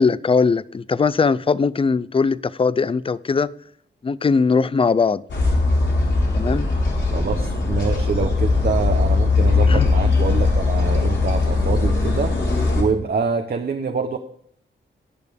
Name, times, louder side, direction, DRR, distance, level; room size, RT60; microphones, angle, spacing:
voice 1, 0.0-3.5 4.0-5.2 6.3-6.7 9.7-9.9, left 5 dB, 30° left, 0.4 m, -20 dB
sound 1, 5.3-12.8, left 3 dB, 75° left, 4.0 m, -19 dB
voice 2, 7.1-12.4 12.7-14.2, right 5 dB, 55° right, 0.8 m, -25 dB
20.0 x 6.7 x 3.4 m
wide cardioid pair, 110°, 20 cm